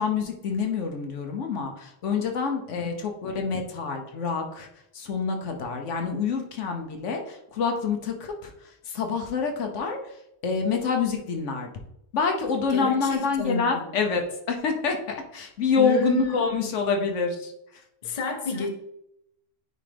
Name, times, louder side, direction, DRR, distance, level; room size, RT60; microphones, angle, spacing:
voice 1, 0.0-4.7 4.9-10.1 10.4-11.7 12.1-17.5, left 5 dB, 75° left, 3 dB, 1.1 m, -27 dB
voice 2, 12.7-13.9 15.8-16.7 18.0-18.7, left 3 dB, 35° left, 3 dB, 0.8 m, -30 dB
9.0 x 3.4 x 3.4 m, 0.79 s
omnidirectional pair, 1.3 m